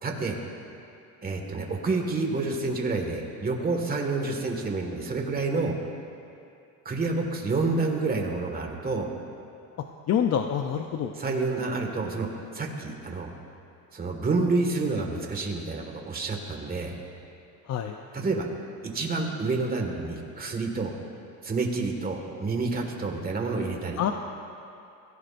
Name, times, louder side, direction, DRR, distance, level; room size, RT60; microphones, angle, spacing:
voice 1, 0.0-0.4 1.2-5.7 6.8-9.1 11.2-13.3 13.9-16.9 18.1-18.5 18.8-20.9 21.4-24.0, right 3 dB, 25° right, 2 dB, 1.8 m, -28 dB
voice 2, 10.1-11.1 17.7-18.0 24.0-24.1, left 8 dB, 45° left, 4 dB, 0.7 m, -26 dB
22.0 x 16.0 x 2.6 m, 2.6 s
cardioid pair, 130°, 35 cm